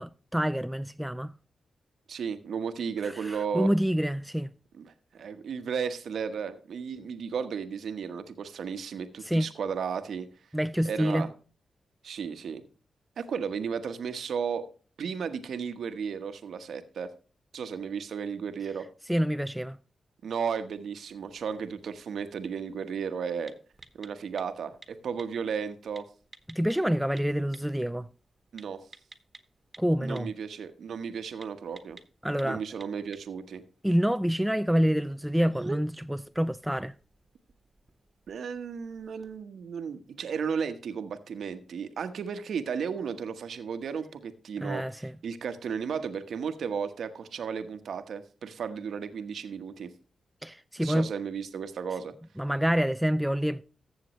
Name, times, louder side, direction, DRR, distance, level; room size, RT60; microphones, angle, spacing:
voice 1, 0.0-1.3 3.0-4.5 9.2-9.5 10.5-11.3 19.1-19.8 26.5-28.1 29.8-30.3 32.2-32.6 33.8-36.9 44.6-45.1 50.4-51.1 52.4-53.6, equal, 5° right, 0.5 m, -27 dB
voice 2, 2.1-3.7 4.7-10.3 10.8-11.3 12.0-12.6 13.2-14.6 15.0-17.1 17.5-18.9 20.2-23.5 23.9-26.1 28.5-28.8 30.0-32.0 32.4-33.6 38.3-49.9 50.8-52.1, right 6 dB, 75° right, 1.1 m, -34 dB
sound 1, 21.1-39.4, right 2 dB, 25° right, 1.6 m, -52 dB
14.5 x 7.1 x 3.1 m
supercardioid pair, 45°, 0 cm